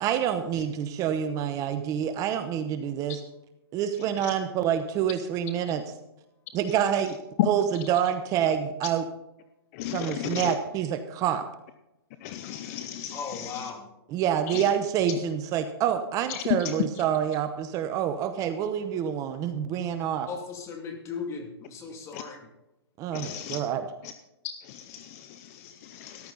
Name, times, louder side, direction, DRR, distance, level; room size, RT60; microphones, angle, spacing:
voice 1, 0.0-3.2 3.7-5.8 6.5-7.2 7.4-9.0 9.9-11.4 14.1-20.3 23.0-23.8, right 9 dB, 25° right, 9 dB, 0.9 m, -27 dB
voice 2, 9.7-10.5 12.2-13.7 14.5-14.7 16.3-16.7 22.1-22.2 23.1-23.6 24.0-24.1 24.6-26.3, left 12 dB, 35° left, 11 dB, 0.7 m, -33 dB
voice 3, 13.1-13.9 20.2-22.4, left 5 dB, 20° left, 3 dB, 2.6 m, -37 dB
14.5 x 11.5 x 4.0 m, 0.92 s
hypercardioid pair, 140°, 13 cm